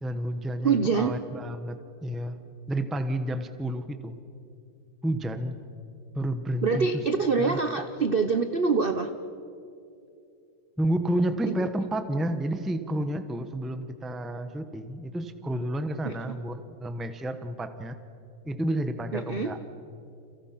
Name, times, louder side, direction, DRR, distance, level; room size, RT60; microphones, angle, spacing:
voice 1, 0.0-2.4 2.7-4.2 5.0-5.5 6.1-7.0 7.4-7.6 10.8-18.0 18.4-19.6, right 1 dB, ahead, 9 dB, 0.6 m, -30 dB
voice 2, 0.6-1.1 6.6-9.1 11.5-11.6 16.0-16.1 19.1-19.5, right 5 dB, 60° right, 8 dB, 0.5 m, -25 dB
30.0 x 29.0 x 5.9 m, 2.5 s
omnidirectional pair, 2.4 m